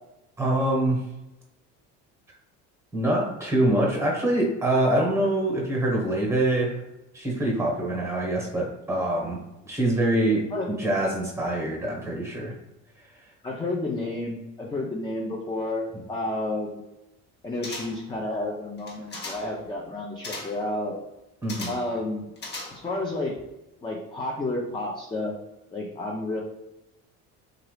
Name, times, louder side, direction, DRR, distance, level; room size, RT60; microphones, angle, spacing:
voice 1, 0.4-1.0 2.9-6.8 7.1-9.4 9.6-12.6 21.4-21.7, right 1 dB, 10° right, -1 dB, 1.1 m, -25 dB
voice 2, 13.4-16.8 17.4-21.0 21.7-22.3 22.7-23.3 23.8-25.3 25.7-26.4, left 2 dB, 15° left, -2 dB, 0.5 m, -31 dB
sound 1, 17.6-18.1 18.8-19.6 20.2-20.7 21.5-21.9 22.4-23.0 23.3-23.4, left 2 dB, 30° left, 0.9 m, -38 dB
2.8 x 2.4 x 3.2 m, 0.94 s
supercardioid pair, 105°, 33 cm